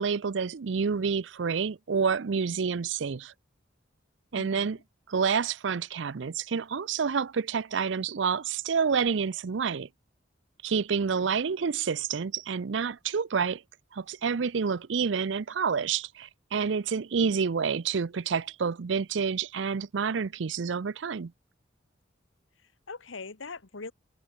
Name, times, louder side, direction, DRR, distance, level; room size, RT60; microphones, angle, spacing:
voice 1, 0.0-3.3 4.3-4.8 5.1-9.9 10.6-13.6 13.9-21.3, right 6 dB, 70° right, 0.5 m, -28 dB
voice 2, 4.4-4.8 11.1-11.4 22.6-23.9, left 4 dB, 85° left, 1.4 m, -43 dB
head